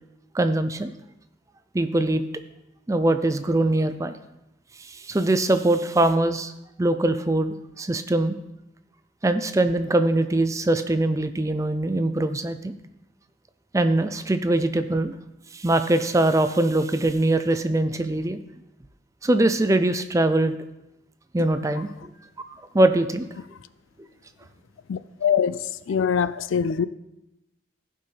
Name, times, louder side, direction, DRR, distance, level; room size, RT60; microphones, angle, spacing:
voice 1, 0.3-0.9 1.7-2.2 2.9-4.2 4.8-6.5 6.8-8.4 9.2-12.7 13.7-15.1 15.5-18.4 19.2-20.6 21.3-21.9 22.7-23.3, right 2 dB, 15° right, 0.4 m, -22 dB
voice 2, 24.9-26.8, left 7 dB, 80° left, 0.4 m, -24 dB
15.5 x 5.6 x 3.3 m
head